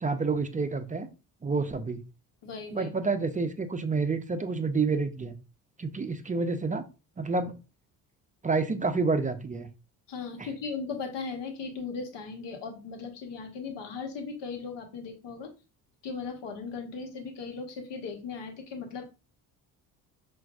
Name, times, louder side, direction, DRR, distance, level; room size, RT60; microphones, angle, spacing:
voice 1, 0.0-1.1 1.4-2.0 2.7-5.4 5.8-6.8 7.2-7.5 8.4-9.7 10.4-10.5, right 4 dB, 20° right, 9 dB, 0.5 m, -28 dB
voice 2, 2.4-2.9 10.1-15.5 16.0-19.1, left 5 dB, 65° left, 4 dB, 1.3 m, -37 dB
5.7 x 2.6 x 2.4 m, 0.31 s
supercardioid pair, 60°, 45 cm